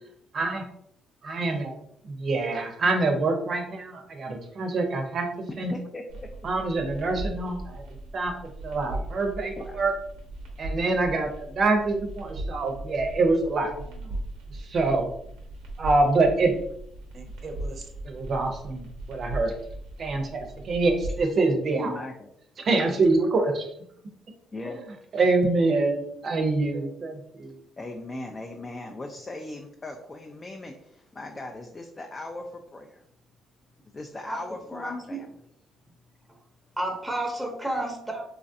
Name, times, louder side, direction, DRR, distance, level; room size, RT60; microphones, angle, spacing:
voice 1, 0.3-0.7 1.2-1.8 2.0-5.7 6.4-7.8 8.1-8.3 8.6-9.9 10.6-14.2 14.5-15.1 15.8-16.5 17.1-19.5 20.0-22.0 22.6-23.7 25.1-27.6, right 3 dB, 50° right, 4 dB, 0.6 m, -25 dB
voice 2, 5.7-6.3 9.6-9.8 21.7-22.3 24.5-24.8 27.8-33.0 33.8-35.3, left 2 dB, 30° left, 2 dB, 0.4 m, -39 dB
sound 1, 6.1-21.3, right 1 dB, 90° right, 0.7 m, -38 dB
voice 3, 34.7-35.2 36.8-38.2, right 1 dB, 5° right, 1 dB, 0.7 m, -31 dB
3.1 x 2.4 x 2.6 m, 0.72 s
cardioid pair, 85°, 0 cm